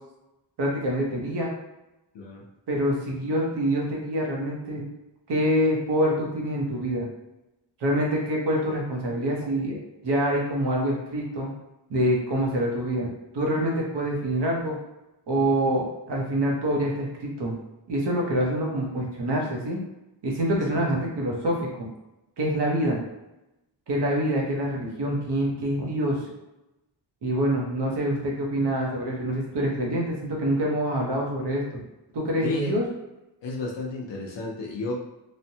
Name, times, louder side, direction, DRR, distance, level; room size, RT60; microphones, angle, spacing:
voice 1, 0.6-1.5 2.7-4.8 5.3-7.1 7.8-9.8 10.0-11.5 11.9-13.1 13.3-14.8 15.3-17.6 17.9-19.8 20.2-21.9 22.4-23.0 23.9-26.2 27.2-31.6 32.1-32.8, equal, 65° right, -2 dB, 0.9 m, -26 dB
voice 2, 32.4-32.8 33.4-34.9, left 3 dB, 70° left, -2 dB, 0.6 m, -32 dB
3.1 x 2.1 x 2.7 m, 0.96 s
wide cardioid pair, 125°, 44 cm